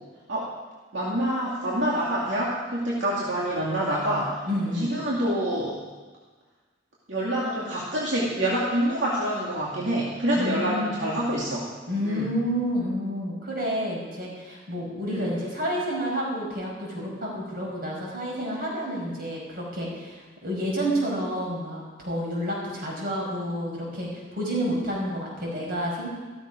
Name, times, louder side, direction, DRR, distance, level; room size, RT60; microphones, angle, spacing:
voice 1, 0.9-4.4 4.7-5.8 7.1-11.7 12.0-12.3 15.0-15.3, right 1 dB, 80° right, -5 dB, 2.3 m, -26 dB
voice 2, 4.4-5.0 10.3-10.9 11.9-26.1, equal, 50° right, -3 dB, 5.5 m, -29 dB
14.5 x 13.5 x 5.2 m, 1.3 s
head